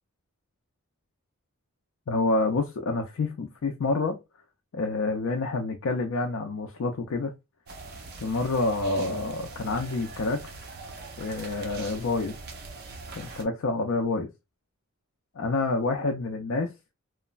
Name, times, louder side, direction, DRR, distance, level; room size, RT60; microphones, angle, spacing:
voice 1, 2.1-4.2 4.7-7.3 8.2-10.5 11.2-12.3 13.2-14.3 15.4-16.7, left 3 dB, 65° left, 0.4 m, -28 dB
sound 1, 7.7-13.4, right 3 dB, 45° right, 0.5 m, -42 dB
3.0 x 2.0 x 2.3 m
head